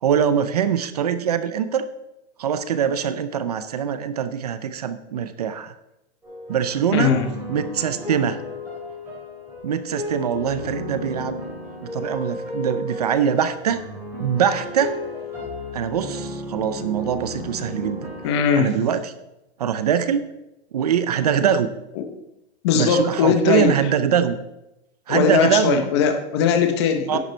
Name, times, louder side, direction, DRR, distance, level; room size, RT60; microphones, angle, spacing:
voice 1, 0.0-1.9 2.4-5.7 6.5-7.1 7.5-8.4 9.6-11.4 11.8-13.8 14.2-15.0 15.7-18.1 18.6-19.0 19.6-20.3 20.7-21.7 22.7-24.4 25.1-25.8 27.1-27.2, right 8 dB, 40° right, 11 dB, 0.5 m, -23 dB
sound 1, 6.2-18.4, left 1 dB, 5° right, 3.9 m, -33 dB
voice 2, 6.9-7.3 18.2-18.7 22.0-22.1 22.6-23.8 25.1-27.2, left 6 dB, 25° left, 7 dB, 0.8 m, -19 dB
10.5 x 7.9 x 4.4 m, 0.90 s
hypercardioid pair, 175°, 32 cm